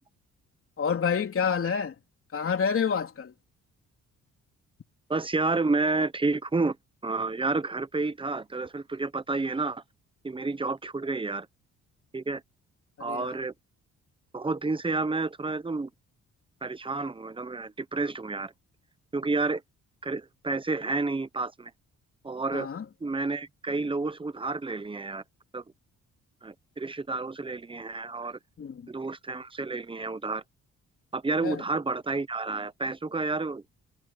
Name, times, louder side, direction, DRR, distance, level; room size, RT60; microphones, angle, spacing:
voice 1, 0.8-2.0 2.3-3.3 13.0-13.4 22.5-22.8 28.6-28.9 31.4-31.6, left 6 dB, 45° left, 3.5 m, -28 dB
voice 2, 5.1-6.8 7.0-9.8 10.2-11.5 12.1-12.4 13.0-13.5 14.3-15.9 16.6-18.5 19.1-19.6 20.0-21.7 22.2-22.7 23.0-25.2 25.5-25.6 26.4-28.4 28.9-30.4 31.1-33.6, right 3 dB, 15° right, 1.0 m, -30 dB
cardioid pair, 90°, 30 cm